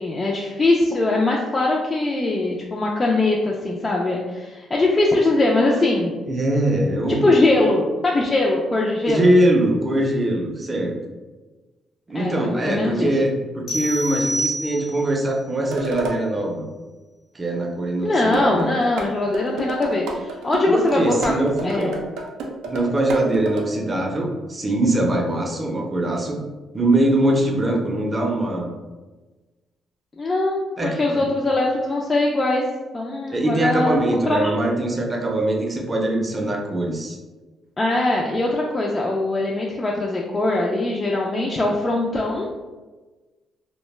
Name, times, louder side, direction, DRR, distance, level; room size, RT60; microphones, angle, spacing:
voice 1, 0.0-6.1 7.2-9.3 12.1-13.1 18.0-21.3 21.6-22.0 30.2-30.6 30.8-32.6 32.9-34.5 37.8-42.5, left 2 dB, 25° left, -2 dB, 0.3 m, -21 dB
voice 2, 6.3-7.3 9.1-10.9 12.1-16.6 17.3-18.7 20.7-21.9 22.7-26.4 26.7-28.7 30.8-31.2 33.3-37.2, right 1 dB, 30° right, 0 dB, 0.5 m, -22 dB
sound 1, 13.7-15.2, right 1 dB, 65° left, 0.7 m, -27 dB
sound 2, 15.6-16.2 18.3-19.1 19.3-23.6, right 3 dB, 90° right, 0.3 m, -30 dB
2.1 x 2.1 x 3.1 m, 1.2 s
cardioid pair, 90°, 0 cm